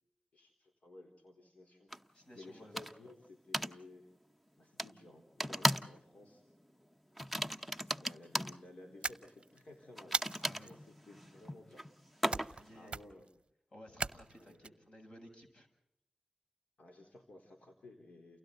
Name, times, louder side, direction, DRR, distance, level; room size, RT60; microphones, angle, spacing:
voice 1, 0.3-1.9 2.3-4.1 4.6-6.4 7.6-11.9 12.7-13.3 14.4-14.7 16.8-18.4, left 2 dB, 80° left, 3 dB, 3.9 m, -56 dB
sound 1, 1.9-2.0 2.8-3.1 3.5-3.8 4.8-4.9 5.4-6.0 6.2-6.5 7.2-8.6 10.0-12.7, equal, ahead, 0.9 m, -36 dB
voice 2, 2.1-2.8 10.4-10.7 12.5-13.0 13.7-15.7, equal, 45° left, 3 dB, 7.3 m, -56 dB
sound 2, 9.0-9.6 10.1-10.7 12.3-12.6 12.9-13.3 14.0-14.7, right 4 dB, 45° right, 0.8 m, -38 dB
30.0 x 29.5 x 3.9 m, 0.78 s
wide cardioid pair, 115°, 2 cm